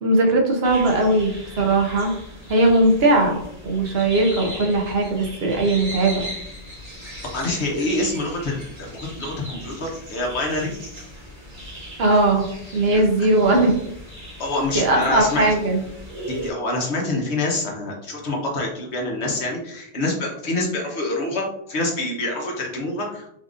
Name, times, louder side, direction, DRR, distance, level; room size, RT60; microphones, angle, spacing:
voice 1, 0.0-2.1 2.5-6.3 12.0-13.8 14.7-15.8, right 2 dB, 65° right, 2 dB, 1.1 m, -19 dB
sound 1, 0.6-16.5, equal, 45° right, 1.7 m, -38 dB
voice 2, 7.3-10.7 12.9-13.0 14.4-15.5 16.3-23.3, left 2 dB, 80° left, -1 dB, 1.3 m, -26 dB
4.1 x 3.7 x 2.5 m, 0.75 s
omnidirectional pair, 1.1 m